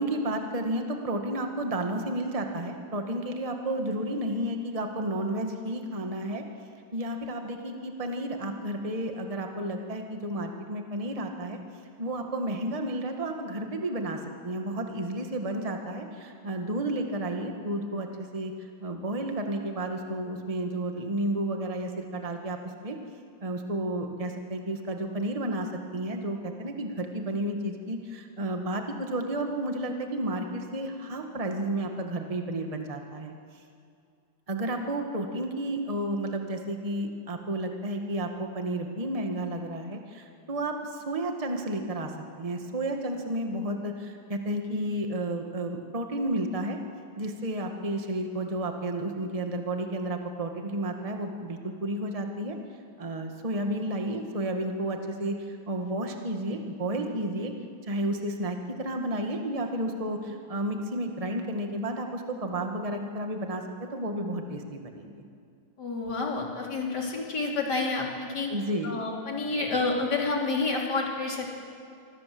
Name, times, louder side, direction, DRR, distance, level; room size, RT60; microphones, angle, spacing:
voice 1, 0.0-6.4 6.9-11.6 12.0-22.6 22.8-23.0 23.4-25.7 25.9-33.3 34.5-42.1 42.4-46.8 47.2-52.6 53.0-57.5 57.9-65.2 68.5-68.9, right 1 dB, 15° right, 4 dB, 1.7 m, -32 dB
voice 2, 65.8-68.5 68.8-71.6, left 3 dB, 50° left, -1 dB, 4.0 m, -29 dB
25.5 x 25.0 x 7.8 m, 2.3 s
omnidirectional pair, 2.4 m